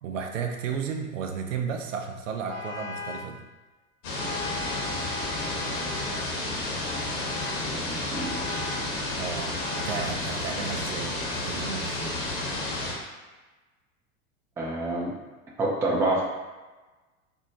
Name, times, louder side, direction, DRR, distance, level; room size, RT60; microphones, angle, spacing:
voice 1, 0.0-3.4 9.2-12.2, right 6 dB, 65° right, 4 dB, 0.5 m, -33 dB
Vehicle horn car horn honking, 2.5-3.3 4.1-6.3 6.8-7.7 8.1-9.0 9.6-10.2, left 3 dB, 85° left, 1.0 m, -38 dB
sound 1, 4.0-12.9, left 2 dB, 50° left, 1.0 m, -31 dB
voice 2, 7.7-8.4 14.6-15.1 15.6-16.2, right 2 dB, 5° right, -4 dB, 0.3 m, -27 dB
4.4 x 2.0 x 2.7 m, 1.2 s
figure-of-eight pair, 80°, 41 cm